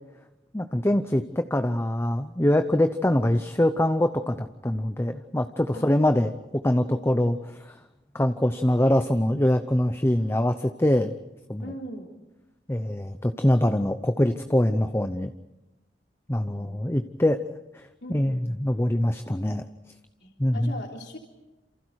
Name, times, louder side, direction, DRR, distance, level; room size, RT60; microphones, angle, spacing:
voice 1, 0.5-6.3 6.6-7.7 8.1-11.1 11.5-11.7 12.7-15.3 16.3-17.4 17.7-19.6 20.4-20.7, left 1 dB, 15° left, 8 dB, 0.8 m, -24 dB
voice 2, 6.8-7.3 11.6-12.1 16.5-16.8 18.0-18.6 20.2-21.2, equal, 75° left, 0 dB, 3.4 m, -40 dB
28.5 x 28.0 x 4.8 m, 1.0 s
head